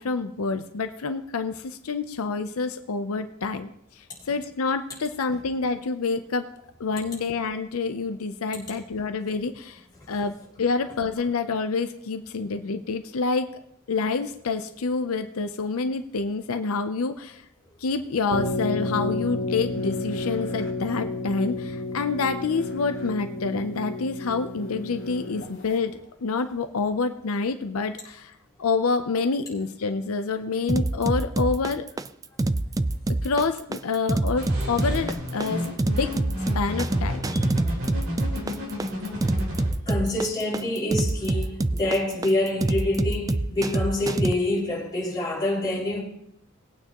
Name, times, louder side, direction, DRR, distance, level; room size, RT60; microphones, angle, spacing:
voice 1, 0.0-6.5 6.8-13.5 13.9-17.4 17.8-28.3 28.6-31.9 33.2-36.1 36.5-37.2, left 4 dB, 85° left, 0.6 m, -27 dB
sound 1, 18.3-25.8, left 2 dB, 60° left, 1.7 m, -31 dB
sound 2, 30.7-44.3, right 2 dB, 15° right, 0.3 m, -25 dB
sound 3, 34.4-39.7, left 1 dB, 75° right, 4.0 m, -32 dB
voice 2, 39.9-46.0, left 1 dB, 20° left, 5.5 m, -26 dB
20.0 x 9.0 x 3.0 m
head